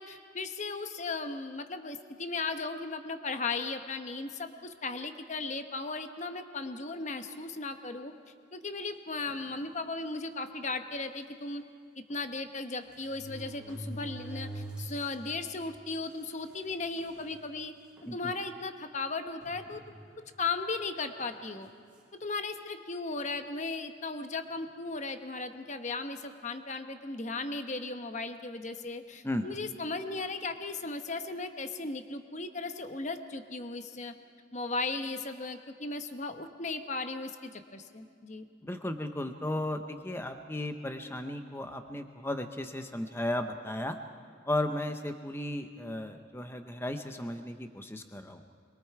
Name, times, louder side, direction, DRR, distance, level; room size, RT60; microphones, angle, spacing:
voice 1, 0.0-8.1 8.5-11.6 12.0-17.7 18.1-19.8 20.2-21.7 22.1-34.1 34.5-38.5, left 3 dB, 35° left, 7 dB, 1.0 m, -36 dB
sound 1, 9.3-9.5 10.3-10.4 10.7-10.8 12.1-12.2 12.9-15.1 15.6-15.7 16.5-16.6 17.0-17.4 18.0-18.1 19.4-20.2 21.2-21.5, right 1 dB, 5° right, 2.9 m, -43 dB
voice 2, 38.6-44.0 44.4-48.4, left 1 dB, 10° left, 7 dB, 0.7 m, -35 dB
25.5 x 22.5 x 4.7 m, 2.2 s
head